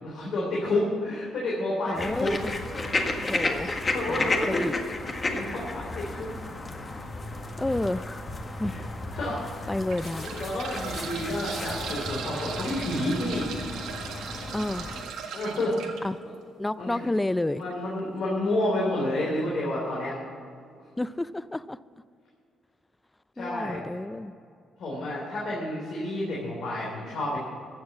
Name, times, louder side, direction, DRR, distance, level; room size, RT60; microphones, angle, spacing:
voice 1, 0.0-2.3 3.8-4.7 5.3-6.3 8.7-8.8 9.1-9.7 10.2-13.5 15.3-15.8 16.2-16.3 16.8-17.1 17.5-20.1 23.4-23.8 24.8-27.4, left 1 dB, 65° left, -4 dB, 3.2 m, -30 dB
sound 1, 1.9-15.0, left 2 dB, 30° left, 1.6 m, -33 dB
voice 2, 1.9-2.6 3.2-4.7 7.6-8.8 9.7-10.3 14.5-14.9 16.0-16.2 16.6-17.6 21.0-21.8 23.4-24.3, left 1 dB, 10° left, 17 dB, 0.3 m, -30 dB
sound 2, 7.7-7.9 8.6-8.7 9.6-16.0 17.6-17.7 18.0-18.1, right 6 dB, 85° right, 1.6 m, -38 dB
15.0 x 7.2 x 7.3 m, 2.3 s
cardioid pair, 90°, 0 cm